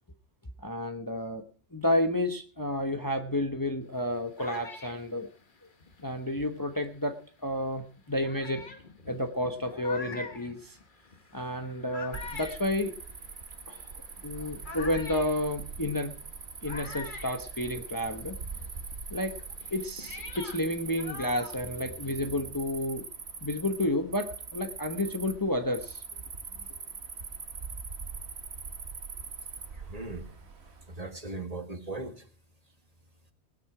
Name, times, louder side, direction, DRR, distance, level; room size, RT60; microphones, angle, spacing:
voice 1, 0.6-1.4 1.7-5.3 6.0-7.2 7.4-8.6 9.1-10.8 11.3-12.9 13.7-13.9 14.2-16.1 16.6-18.4 19.1-19.3 19.7-23.0 23.4-26.0, left 1 dB, 20° left, 6 dB, 1.1 m, -31 dB
sound 1, 3.9-6.9 7.6-7.7 8.2-18.2 18.5-22.3, left 4 dB, 45° left, 1.5 m, -46 dB
Cricket, 12.1-31.0, right 5 dB, 70° right, 1.6 m, -42 dB
voice 2, 29.8-30.3 30.9-32.3, right 2 dB, 35° right, 6 dB, 1.8 m, -38 dB
19.5 x 9.7 x 4.9 m, 0.41 s
omnidirectional pair, 1.2 m